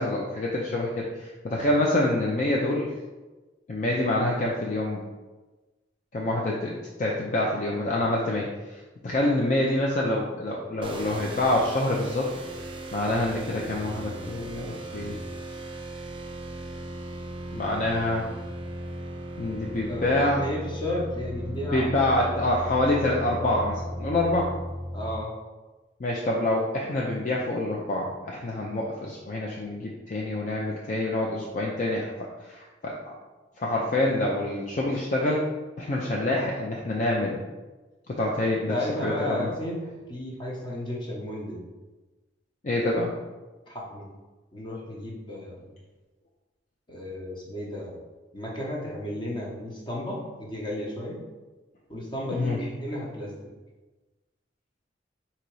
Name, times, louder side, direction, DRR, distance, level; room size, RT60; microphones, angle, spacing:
voice 1, 0.0-2.9 3.7-5.0 6.1-12.3 12.9-15.2 17.5-18.3 19.4-20.4 21.7-24.5 26.0-32.1 32.4-33.1 33.6-35.5 35.8-37.4 38.1-38.8 39.0-39.5 42.6-43.1 52.3-52.6, left 1 dB, 40° left, -2 dB, 0.5 m, -26 dB
sound 1, 10.8-25.1, right 1 dB, 30° right, 0.5 m, -37 dB
voice 2, 20.4-21.9 24.9-25.3 38.7-41.7 43.7-44.1 44.5-45.7 46.9-48.0 48.3-51.2 51.9-53.3, left 1 dB, 25° left, -3 dB, 0.9 m, -33 dB
4.0 x 2.9 x 4.6 m, 1.2 s
head